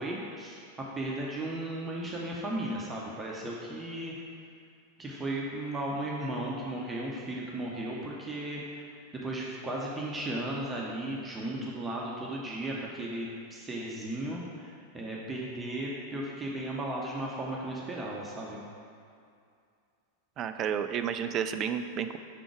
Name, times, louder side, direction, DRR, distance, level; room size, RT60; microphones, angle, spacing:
voice 1, 0.0-4.2 5.0-18.6, right 1 dB, 15° right, -4 dB, 0.7 m, -35 dB
voice 2, 20.4-22.2, right 8 dB, 30° right, 9 dB, 0.3 m, -31 dB
5.9 x 3.8 x 4.7 m, 2.4 s
figure-of-eight pair, 90°, 0 cm